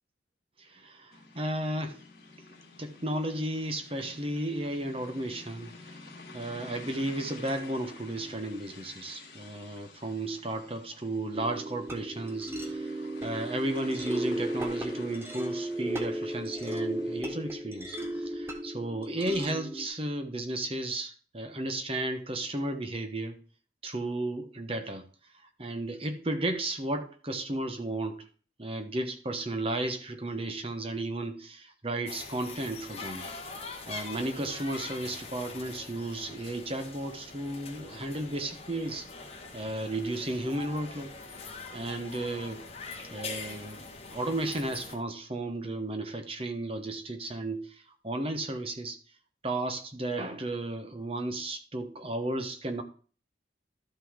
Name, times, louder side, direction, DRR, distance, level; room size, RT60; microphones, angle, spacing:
voice 1, 0.6-2.0 2.8-5.7 6.3-23.4 23.8-25.1 25.6-28.3 28.6-33.3 33.9-39.1 39.5-41.1 41.7-42.6 43.1-49.0 49.4-52.8, right 1 dB, 30° right, 7 dB, 1.1 m, -34 dB
sound 1, 1.1-17.6, left 3 dB, 55° left, 2.4 m, -50 dB
sound 2, 11.3-19.9, right 1 dB, 15° right, 1.1 m, -35 dB
sound 3, 32.1-45.0, left 4 dB, 30° left, 1.7 m, -43 dB
12.0 x 6.0 x 3.7 m, 0.40 s
head